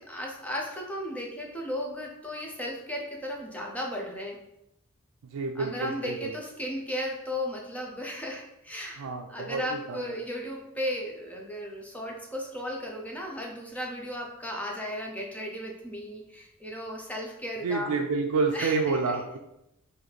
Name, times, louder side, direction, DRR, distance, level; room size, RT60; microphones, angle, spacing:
voice 1, 0.0-4.4 5.5-17.9 18.5-19.2, equal, 5° left, -1 dB, 0.5 m, -35 dB
voice 2, 5.3-6.3 9.0-10.0 17.6-19.4, right 4 dB, 85° right, 2 dB, 0.4 m, -29 dB
4.0 x 2.6 x 3.2 m, 0.85 s
head